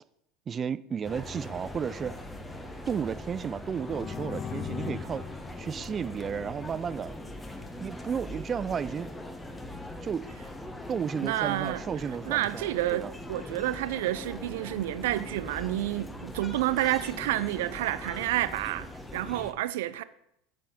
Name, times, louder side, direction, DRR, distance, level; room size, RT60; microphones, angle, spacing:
voice 1, 0.5-2.1 2.9-5.2 5.6-7.1 7.8-9.1 10.0-10.2 10.9-13.1, right 7 dB, 30° right, 0.4 m, -33 dB
sound 1, 1.0-19.5, left 1 dB, 15° left, 1.3 m, -41 dB
sound 2, 3.6-7.3, left 7 dB, 40° left, 0.7 m, -40 dB
voice 2, 11.2-11.8 12.2-20.0, right 15 dB, 75° right, 0.6 m, -29 dB
9.0 x 5.6 x 6.8 m
hypercardioid pair, 95°, 0 cm